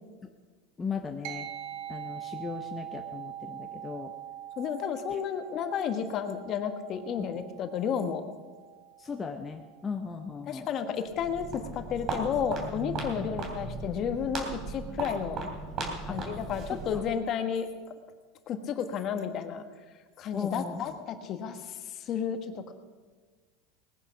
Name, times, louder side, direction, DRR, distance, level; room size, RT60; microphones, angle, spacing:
voice 1, 0.8-1.5 1.9-4.1 5.1-5.2 7.2-7.4 9.0-10.7 13.2-13.3 16.1-16.2 16.9-17.0 20.3-21.0, left 5 dB, 20° left, 3 dB, 0.8 m, -37 dB
sound 1, 1.2-11.0, right 11 dB, 70° right, 1.5 m, -44 dB
voice 2, 4.6-8.2 10.5-15.4 16.0-17.7 18.5-19.6 20.2-22.7, left 7 dB, 40° left, 7 dB, 1.4 m, -32 dB
Walk footsteps, 11.1-17.2, right 3 dB, 40° right, 3.1 m, -37 dB
19.5 x 9.9 x 5.9 m, 1.4 s
supercardioid pair, 130°, 0 cm